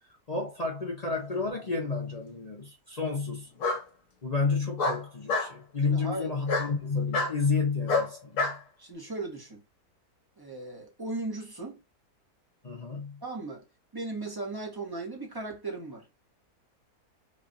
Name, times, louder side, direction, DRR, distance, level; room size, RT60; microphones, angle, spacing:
voice 1, 0.3-3.5 4.2-8.6 12.6-13.2, left 4 dB, 40° left, 0.6 m, -30 dB
Bark, 1.4-2.1 3.6-3.8 4.8-5.5 6.5-6.7 7.1-7.3 7.9-8.6, left 3 dB, 60° left, 1.2 m, -28 dB
voice 2, 5.8-6.3 8.8-9.6 10.4-11.8 13.2-13.6 13.9-16.1, right 2 dB, 15° right, 0.9 m, -37 dB
3.3 x 2.4 x 3.8 m
omnidirectional pair, 1.7 m